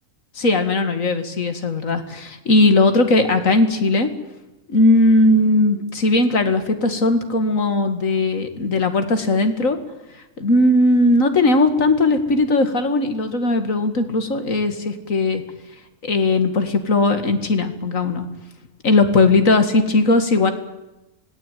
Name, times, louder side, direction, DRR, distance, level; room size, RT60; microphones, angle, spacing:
voice 1, 0.4-4.1 4.7-9.8 10.4-15.4 16.0-18.3 18.8-20.5, left 2 dB, 60° left, 8 dB, 2.5 m, -18 dB
25.5 x 18.5 x 9.3 m, 1.0 s
omnidirectional pair, 1.5 m